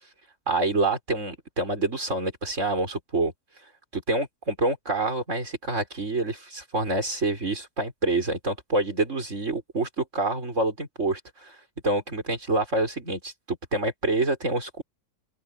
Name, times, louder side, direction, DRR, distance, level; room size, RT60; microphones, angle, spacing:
voice 1, 0.5-3.3 3.9-11.6 11.8-14.8, right 2 dB, 50° right, 5.7 m, -27 dB
open air
omnidirectional pair, 1.6 m